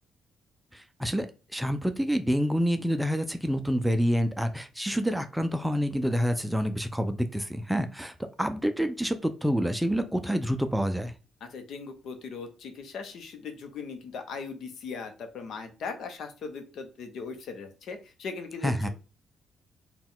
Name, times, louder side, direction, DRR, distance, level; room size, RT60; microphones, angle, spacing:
voice 1, 0.7-1.3 1.5-11.1 18.6-18.9, equal, 5° right, 8 dB, 0.4 m, -27 dB
voice 2, 11.5-18.9, left 5 dB, 70° left, 6 dB, 0.8 m, -39 dB
4.2 x 2.3 x 3.7 m, 0.32 s
cardioid pair, 90°, 0 cm